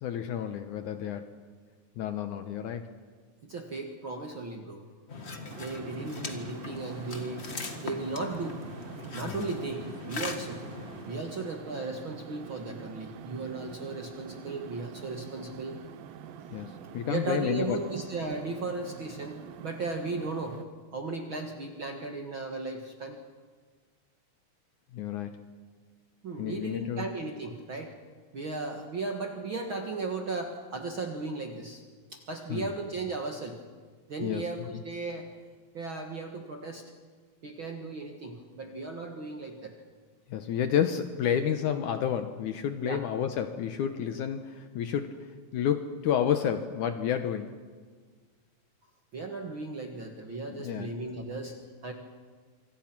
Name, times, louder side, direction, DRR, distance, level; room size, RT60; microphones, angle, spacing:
voice 1, 0.0-1.3 2.0-2.9 9.3-9.5 16.5-17.8 24.9-25.3 26.4-27.0 32.5-32.7 34.2-34.4 40.3-45.2 45.5-47.5 50.5-50.9, left 9 dB, 70° left, 8 dB, 2.2 m, -30 dB
voice 2, 3.4-4.9 5.6-7.5 7.8-8.7 9.1-10.6 11.1-15.8 17.1-20.6 20.9-23.2 26.2-28.0 28.3-31.8 32.1-33.6 34.1-35.3 35.7-36.9 37.4-39.7 42.8-43.0 49.1-51.9, right 3 dB, 45° right, 3 dB, 1.9 m, -36 dB
sound 1, 5.1-11.2, left 3 dB, 35° left, 1.1 m, -40 dB
sound 2, 5.5-20.6, right 9 dB, 80° right, 2.8 m, -46 dB
26.5 x 25.5 x 6.0 m, 1.5 s
omnidirectional pair, 4.0 m